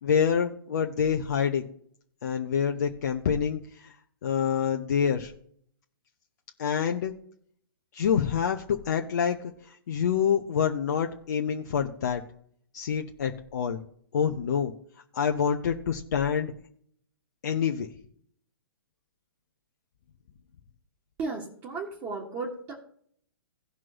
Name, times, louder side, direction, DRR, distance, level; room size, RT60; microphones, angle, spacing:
voice 1, 0.0-1.7 2.2-3.9 4.2-5.3 6.6-7.1 7.9-12.2 12.7-13.8 14.1-14.7 15.1-16.5 17.4-17.9, left 7 dB, 50° left, 4 dB, 0.8 m, -27 dB
voice 2, 21.2-22.7, right 3 dB, 25° right, -3 dB, 1.9 m, -34 dB
17.5 x 6.1 x 3.0 m, 0.63 s
figure-of-eight pair, 115°, 12 cm